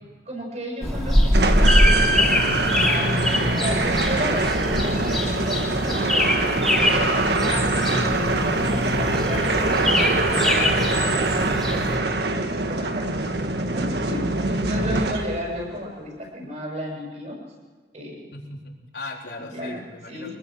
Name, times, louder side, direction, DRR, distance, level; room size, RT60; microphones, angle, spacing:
voice 1, 0.3-9.6 10.3-12.1 12.3-17.4 17.9-18.2 19.5-19.8 20.1-20.3, equal, 40° right, -1 dB, 7.5 m, -33 dB
sound 1, 0.8-12.0, left 1 dB, ahead, 2.9 m, -23 dB
sound 2, 1.3-15.6, right 2 dB, 75° right, 1.6 m, -23 dB
voice 2, 18.3-20.3, left 2 dB, 85° left, -1 dB, 4.0 m, -38 dB
24.5 x 20.5 x 6.5 m, 1.4 s
head